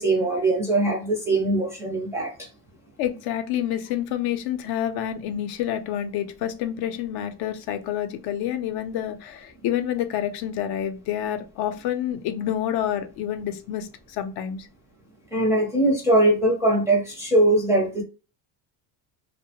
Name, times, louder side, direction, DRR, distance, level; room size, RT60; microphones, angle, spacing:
voice 1, 0.0-2.5 15.3-18.0, right 1 dB, 5° right, 0.4 m, -21 dB
voice 2, 3.0-14.7, left 10 dB, 65° left, 0.5 m, -28 dB
2.7 x 2.1 x 2.8 m
cardioid pair, 175°, 42 cm